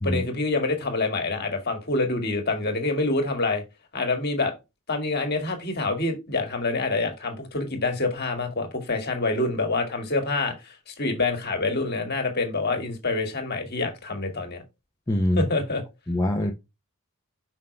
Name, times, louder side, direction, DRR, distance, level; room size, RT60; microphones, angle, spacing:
voice 1, 0.0-3.6 3.9-4.5 4.9-14.6 15.4-15.8, left 3 dB, 45° left, 2.0 m, -26 dB
voice 2, 15.1-15.5 16.1-16.5, left 1 dB, 15° left, 0.7 m, -23 dB
5.8 x 5.4 x 3.3 m
head